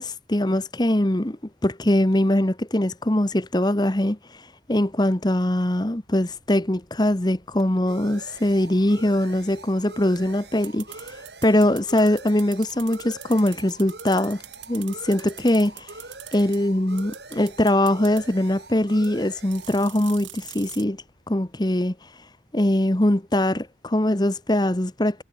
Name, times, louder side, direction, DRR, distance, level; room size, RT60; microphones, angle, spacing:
voice 1, 0.0-1.4 1.6-4.2 4.7-11.0 11.4-14.4 14.7-15.9 16.3-21.9 22.5-25.2, left 1 dB, 20° left, 1.1 m, -22 dB
sound 1, 6.1-21.4, right 3 dB, 60° right, 6.6 m, -44 dB
sound 2, 10.6-16.6 17.0-18.2 19.0-19.1 19.5-20.8, right 16 dB, 80° right, 2.1 m, -42 dB
head